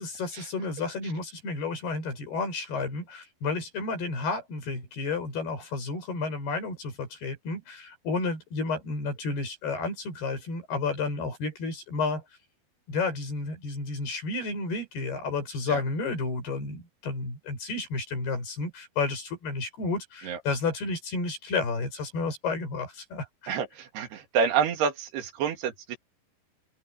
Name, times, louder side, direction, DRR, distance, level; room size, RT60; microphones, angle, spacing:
voice 1, 0.0-12.2 12.9-23.6, left 3 dB, 80° left, 9.2 m, -31 dB
voice 2, 24.0-26.0, right 6 dB, 85° right, 4.3 m, -27 dB
open air
omnidirectional pair, 4.5 m